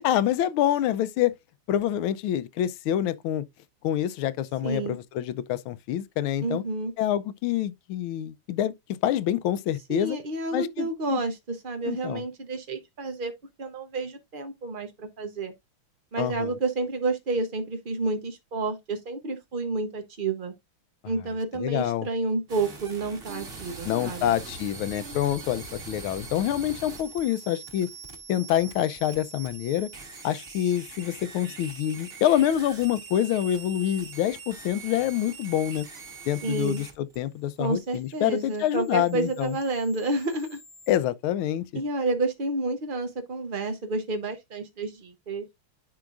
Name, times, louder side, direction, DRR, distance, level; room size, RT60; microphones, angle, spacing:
voice 1, 0.0-1.3 1.7-3.4 3.8-6.6 7.0-8.7 9.0-10.2 10.5-11.2 11.9-12.2 16.2-16.6 21.5-22.1 23.8-27.9 28.3-29.9 30.2-35.9 36.3-39.5 40.9-41.8, left 11 dB, 80° left, 1.4 m, -26 dB
voice 2, 4.6-5.0 6.4-6.9 9.9-13.3 13.6-15.5 16.1-20.5 21.0-24.4 36.4-36.8 37.6-40.6 41.7-45.4, right 3 dB, 80° right, 0.4 m, -30 dB
sound 1, 22.5-41.0, right 4 dB, 30° right, 1.5 m, -43 dB
10.5 x 4.8 x 2.4 m
omnidirectional pair, 2.4 m